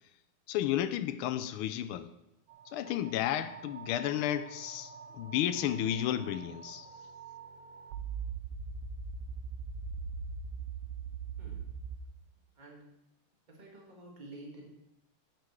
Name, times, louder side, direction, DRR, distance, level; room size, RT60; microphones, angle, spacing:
voice 1, 0.5-2.1 2.7-6.9, left 11 dB, 85° left, 1.5 m, -32 dB
sound 1, 2.5-12.0, right 5 dB, 85° right, 1.6 m, -42 dB
voice 2, 13.5-14.7, right 2 dB, 20° right, 1.7 m, -49 dB
15.0 x 6.0 x 3.2 m
omnidirectional pair, 2.4 m